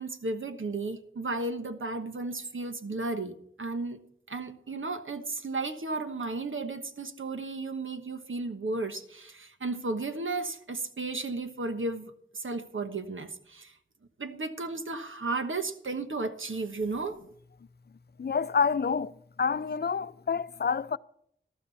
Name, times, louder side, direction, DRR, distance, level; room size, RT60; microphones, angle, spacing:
voice 1, 0.0-4.0 4.3-13.7 14.2-17.2, right 3 dB, 80° right, 1.2 m, -34 dB
voice 2, 18.2-21.0, left 5 dB, 55° left, 0.5 m, -28 dB
13.0 x 12.5 x 4.2 m
wide cardioid pair, 60°, 20 cm